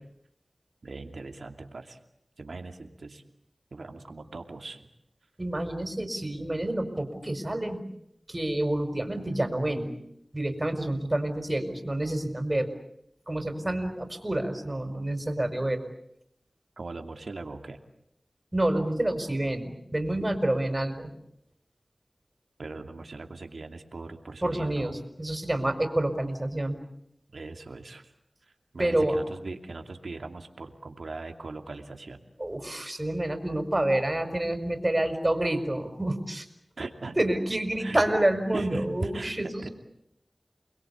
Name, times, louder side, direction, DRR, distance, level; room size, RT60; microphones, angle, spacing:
voice 1, 0.8-2.0 2.4-3.2 3.7-4.9 16.8-17.8 22.6-25.0 27.3-28.1 28.5-32.2 36.8-37.2 37.8-38.0 38.5-39.7, right 3 dB, 90° right, 5 dB, 2.7 m, -40 dB
voice 2, 5.4-7.8 8.3-9.9 10.3-12.7 13.3-15.8 18.5-21.1 24.4-26.8 28.8-29.2 32.4-36.4 37.2-39.7, right 1 dB, 25° right, 7 dB, 5.1 m, -28 dB
29.5 x 21.5 x 8.4 m, 0.74 s
wide cardioid pair, 50°, 0 cm